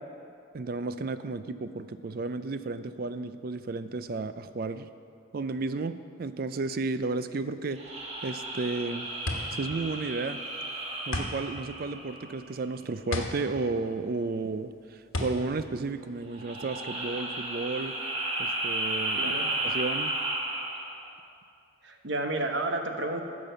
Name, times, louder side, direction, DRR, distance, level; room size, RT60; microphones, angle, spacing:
voice 1, 0.5-4.9 5.3-7.8 8.2-9.2 9.5-10.4 11.1-18.0 18.4-19.3 19.6-20.2, right 3 dB, 45° right, 12 dB, 0.4 m, -33 dB
sound 1, 7.7-12.5 16.3-21.0, right 1 dB, 30° right, 1.3 m, -33 dB
sound 2, 8.5-16.8, left 1 dB, 85° left, 1.3 m, -36 dB
voice 2, 19.2-19.5 21.8-23.2, right 2 dB, 65° right, 4 dB, 1.0 m, -31 dB
14.5 x 5.3 x 6.8 m, 2.4 s
head